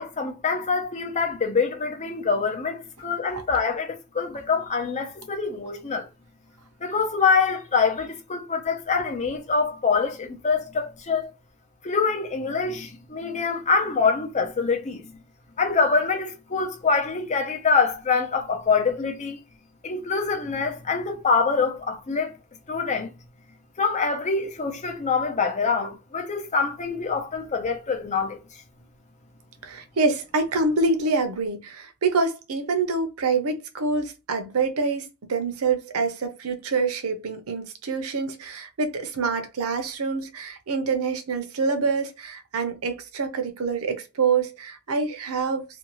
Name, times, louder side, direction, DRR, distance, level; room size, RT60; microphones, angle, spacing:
voice 1, 0.0-6.1 6.8-11.3 11.8-15.2 15.6-19.4 19.8-22.3 22.7-23.1 23.8-28.4, left 5 dB, 30° left, 0.6 m, -25 dB
voice 2, 29.6-45.6, right 4 dB, 70° right, 0.6 m, -26 dB
2.6 x 2.3 x 3.0 m
head